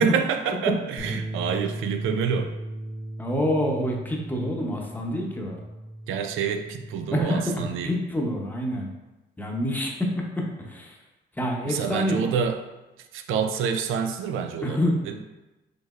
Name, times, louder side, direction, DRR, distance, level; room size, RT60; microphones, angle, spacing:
voice 1, 0.0-2.5 6.1-7.9 11.6-12.6 13.1-15.3, right 6 dB, 85° right, 6 dB, 0.5 m, -27 dB
Bass guitar, 1.0-7.2, right 1 dB, 60° left, 0.7 m, -37 dB
voice 2, 3.2-5.6 7.1-8.9 9.4-11.0 11.4-12.3 14.6-15.0, equal, 10° left, -1 dB, 0.8 m, -27 dB
5.0 x 3.2 x 2.4 m, 1.0 s
cardioid pair, 90°, 20 cm